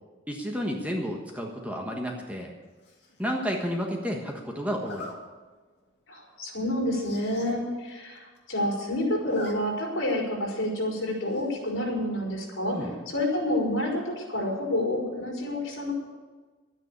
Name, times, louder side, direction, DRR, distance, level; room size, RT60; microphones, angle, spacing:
voice 1, 0.3-2.5 3.2-5.1 12.7-12.9, equal, 5° right, 0 dB, 1.4 m, -31 dB
Zipper (clothing), 2.8-3.2 4.7-5.1 5.7-5.9 6.2-6.3 6.5-6.6 6.9-7.5 7.9-8.0 8.2-8.7 9.0-9.5 9.9-10.0 11.3-11.7, left 2 dB, 55° left, 2.4 m, -42 dB
voice 2, 6.1-12.8 13.1-15.9, left 1 dB, 75° left, -1 dB, 4.6 m, -29 dB
11.5 x 9.8 x 8.2 m, 1.3 s
head